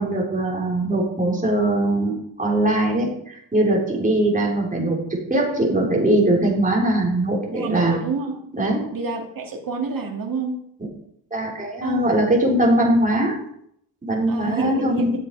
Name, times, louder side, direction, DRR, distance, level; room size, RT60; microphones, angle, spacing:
voice 1, 0.0-8.0 8.5-8.8 11.3-13.4 14.0-15.1, right 1 dB, 20° right, -3 dB, 4.0 m, -21 dB
voice 2, 7.5-8.4 8.9-10.6 11.8-12.0 14.3-15.1, right 4 dB, 50° right, 3 dB, 2.3 m, -28 dB
11.0 x 7.5 x 4.8 m, 0.70 s
cardioid pair, 100°, 43 cm